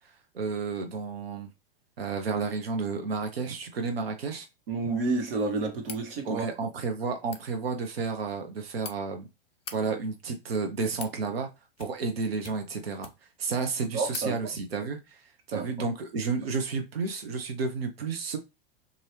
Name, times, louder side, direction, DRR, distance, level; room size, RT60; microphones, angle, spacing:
voice 1, 0.3-1.5 2.0-4.5 6.2-9.3 9.7-11.5 11.8-13.1 13.4-15.2 15.5-18.4, right 4 dB, 85° right, 0.8 m, -31 dB
voice 2, 4.7-6.5 13.9-14.4 15.5-15.9, right 3 dB, 70° right, 1.2 m, -30 dB
sound 1, 5.8-6.1 7.1-7.4 8.4-8.9 9.5-9.8 10.6-11.2 11.7-12.1 12.4-13.4 13.7-13.8 14.1-14.3, left 7 dB, 20° left, 0.4 m, -43 dB
2.8 x 2.5 x 3.3 m
hypercardioid pair, 105°, 29 cm